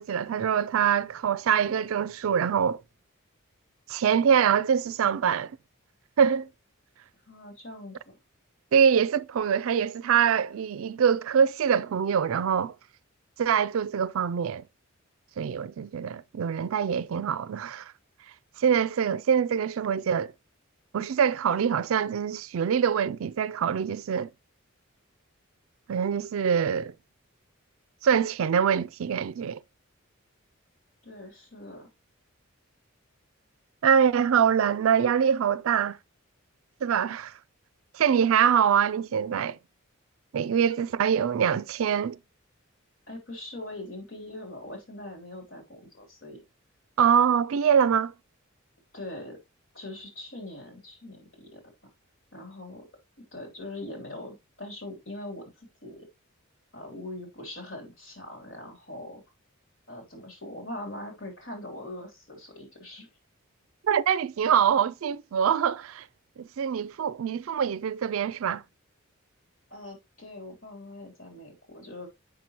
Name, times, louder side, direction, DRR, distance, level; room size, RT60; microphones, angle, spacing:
voice 1, 0.0-2.8 3.9-5.5 6.2-6.5 8.7-12.7 13.4-14.6 15.4-17.9 18.6-20.3 20.9-24.3 25.9-26.9 28.0-29.6 33.8-36.0 36.8-37.3 37.9-39.6 40.3-42.2 47.0-48.1 63.8-66.0 66.4-68.6, right 7 dB, 70° right, 0.4 m, -24 dB
voice 2, 7.3-8.2 31.0-31.9 43.1-46.4 48.9-49.4 49.7-51.6 52.3-52.9 53.2-56.1 56.7-59.2 59.9-63.1 69.7-72.1, left 1 dB, 65° left, 3.2 m, -42 dB
7.3 x 6.0 x 2.9 m
head